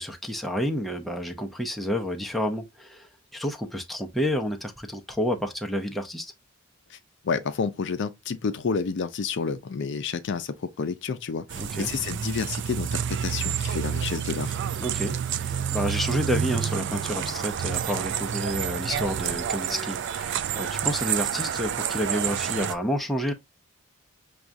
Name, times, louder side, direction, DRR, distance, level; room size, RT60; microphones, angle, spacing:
voice 1, 0.0-6.3 11.6-11.9 14.8-23.3, equal, ahead, 0.5 m, -30 dB
voice 2, 7.2-14.6, left 5 dB, 60° left, 0.5 m, -30 dB
sound 1, 11.5-22.7, right 8 dB, 60° right, 0.4 m, -29 dB
6.0 x 2.3 x 2.5 m
head